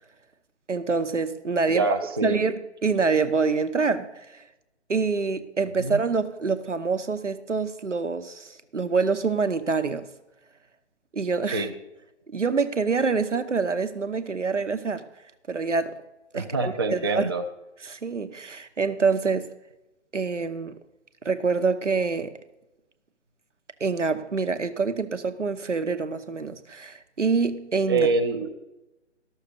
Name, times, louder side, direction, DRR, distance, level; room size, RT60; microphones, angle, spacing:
voice 1, 0.7-1.9 2.2-4.4 4.9-8.5 8.7-10.1 11.1-11.7 12.3-15.0 15.5-16.0 16.3-17.3 17.8-19.5 20.1-20.8 21.2-22.3 23.8-28.1, right 4 dB, 85° right, 1.0 m, -26 dB
voice 2, 1.7-2.4 5.8-6.0 11.5-11.7 16.3-17.4 27.9-28.5, right 3 dB, 20° right, 0.4 m, -25 dB
12.0 x 6.5 x 6.7 m
figure-of-eight pair, 140°, 36 cm